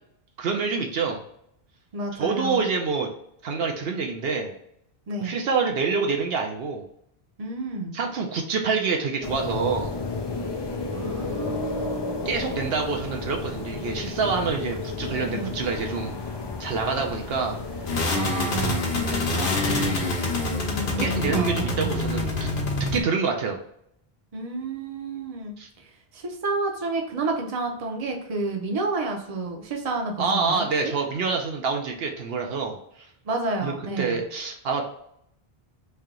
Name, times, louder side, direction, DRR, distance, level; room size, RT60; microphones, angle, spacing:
voice 1, 0.4-1.2 2.1-3.1 3.4-4.5 5.2-6.9 7.9-9.9 12.2-16.2 16.6-17.5 21.0-22.5 22.9-23.6 25.6-25.7 30.2-33.1 33.6-34.9, right 5 dB, 70° right, 2 dB, 0.8 m, -27 dB
voice 2, 1.9-2.6 5.1-5.4 7.4-8.0 10.9-12.6 15.2-15.5 18.1-18.8 19.1-20.3 20.9-21.9 24.3-25.5 26.1-30.9 33.3-34.2, right 3 dB, 40° right, 1 dB, 0.7 m, -30 dB
sound 1, 9.2-18.0, left 3 dB, 40° left, 0.4 m, -32 dB
sound 2, 17.9-23.0, left 2 dB, 60° left, 0.9 m, -26 dB
3.3 x 2.8 x 3.6 m, 0.72 s
omnidirectional pair, 1.0 m